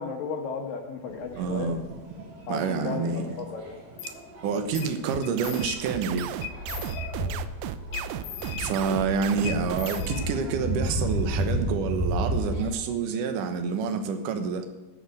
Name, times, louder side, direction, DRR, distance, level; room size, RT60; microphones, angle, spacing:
voice 1, 0.0-1.7 2.5-3.8, left 5 dB, 70° left, 3 dB, 2.4 m, -34 dB
sound 1, 1.1-12.7, equal, 50° right, 4.4 m, -33 dB
voice 2, 1.4-2.0 2.5-3.5 4.4-6.2 8.6-14.6, right 5 dB, 70° right, 6 dB, 2.0 m, -28 dB
sound 2, 4.0-4.2 4.8-5.0 5.2-6.0 6.4-7.4 7.9-9.1 9.4-10.7, left 10 dB, 85° left, 3.3 m, -39 dB
sound 3, 5.1-10.0, right 12 dB, 90° right, 2.1 m, -35 dB
14.0 x 6.3 x 8.0 m, 1.1 s
omnidirectional pair, 5.1 m